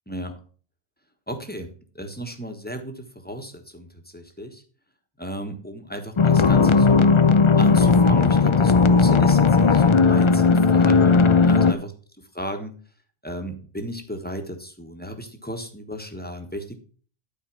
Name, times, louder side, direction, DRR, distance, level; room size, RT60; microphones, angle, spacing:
voice 1, 1.3-1.7 1.9-4.6 5.2-7.1 7.6-11.9 12.3-12.7 13.2-16.8, equal, 10° left, 4 dB, 1.3 m, -35 dB
sound 1, 6.2-11.7, left 4 dB, 40° left, 0.5 m, -16 dB
12.0 x 4.6 x 6.1 m, 0.42 s
omnidirectional pair, 1.2 m